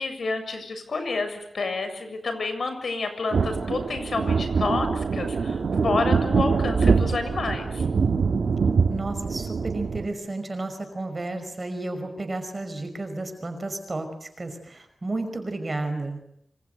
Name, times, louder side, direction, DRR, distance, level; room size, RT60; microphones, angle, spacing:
voice 1, 0.0-7.8, left 3 dB, 65° left, 9 dB, 7.1 m, -29 dB
sound 1, 3.3-10.1, right 5 dB, 75° right, 2.2 m, -24 dB
voice 2, 8.9-16.2, right 2 dB, 35° right, 7 dB, 5.5 m, -32 dB
27.5 x 26.5 x 8.1 m, 0.73 s
wide cardioid pair, 90°, 0 cm